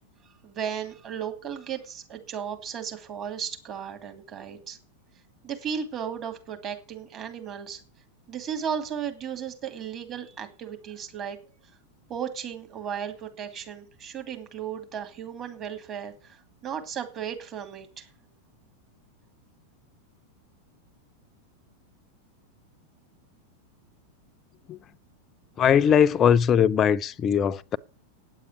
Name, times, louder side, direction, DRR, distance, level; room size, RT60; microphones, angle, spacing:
voice 1, 0.2-4.8 5.4-7.8 8.3-11.4 12.1-18.1, right 8 dB, 30° right, 2.6 m, -35 dB
voice 2, 25.6-27.8, left 8 dB, 25° left, 0.5 m, -20 dB
9.0 x 8.3 x 9.3 m
figure-of-eight pair, 90°, 0 cm